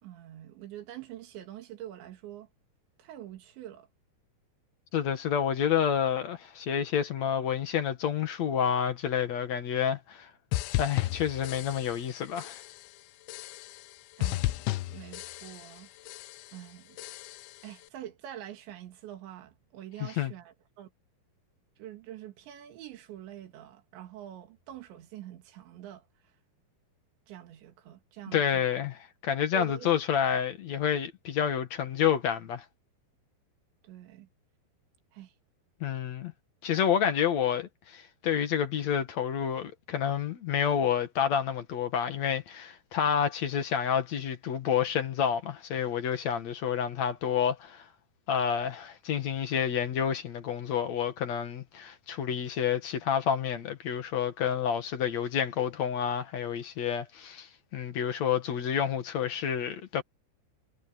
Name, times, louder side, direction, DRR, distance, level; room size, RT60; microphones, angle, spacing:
voice 1, 0.0-2.5 3.0-3.9 14.2-15.9 16.5-17.0 17.6-20.9 21.8-26.1 27.3-28.6 29.5-29.9 33.8-34.3 35.1-35.3 37.0-37.1, right 12 dB, 80° right, 4.5 m, -45 dB
voice 2, 4.9-10.3 10.8-12.6 20.0-20.3 28.3-32.6 35.8-36.3 36.6-47.9 48.3-60.0, left 8 dB, 55° left, 2.0 m, -29 dB
sound 1, 10.5-12.1 12.4-12.9 13.3-13.9 14.2-15.8 16.1-16.6 17.0-17.6, left 17 dB, 85° left, 3.0 m, -34 dB
omnidirectional pair, 5.2 m